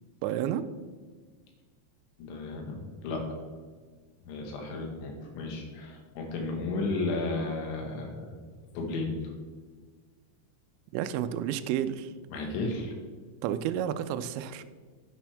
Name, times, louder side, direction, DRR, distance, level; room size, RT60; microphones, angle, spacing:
voice 1, 0.2-0.7 10.9-12.1 13.4-14.6, right 10 dB, 85° right, 11 dB, 2.7 m, -30 dB
voice 2, 2.2-3.4 4.2-8.3 8.8-9.2 12.3-13.0, left 3 dB, 80° left, 2 dB, 3.9 m, -33 dB
10.5 x 9.6 x 3.4 m, 1.5 s
omnidirectional pair, 5.3 m